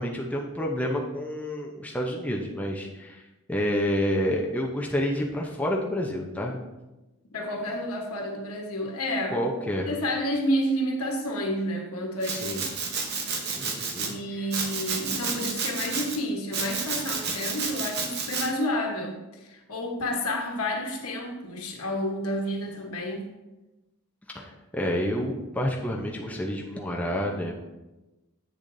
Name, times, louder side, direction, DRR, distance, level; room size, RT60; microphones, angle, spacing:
voice 1, 0.0-3.2 3.5-6.6 9.3-9.9 12.3-12.6 13.4-14.5 24.3-27.5, equal, 5° left, -1 dB, 0.6 m, -29 dB
voice 2, 7.3-9.4 9.9-12.6 14.0-23.2, equal, 80° left, 2 dB, 1.2 m, -30 dB
Domestic sounds home sounds, 12.2-14.1 14.5-16.2 16.5-18.5, right 5 dB, 45° right, 0.9 m, -31 dB
8.2 x 6.9 x 2.7 m, 1.0 s
head